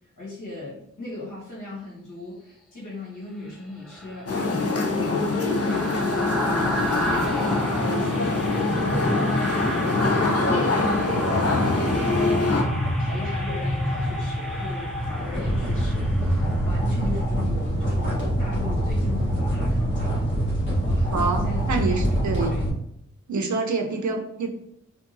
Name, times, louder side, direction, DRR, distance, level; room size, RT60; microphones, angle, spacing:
voice 1, 0.2-6.4 7.0-9.9 10.2-12.4 13.0-22.1 22.4-22.7 23.3-23.5, left 2 dB, 75° left, -6 dB, 1.4 m, -38 dB
sound 1, 3.9-17.2 17.6-17.8, equal, ahead, 0.6 m, -29 dB
sound 2, 4.3-12.6, left 3 dB, 50° left, 0.6 m, -24 dB
sound 3, 8.3-22.7, right 1 dB, 35° left, 1.3 m, -27 dB
voice 2, 21.1-22.6 23.3-24.5, right 3 dB, 70° right, 4 dB, 0.6 m, -26 dB
3.7 x 2.3 x 2.6 m, 0.72 s
wide cardioid pair, 70°, 30 cm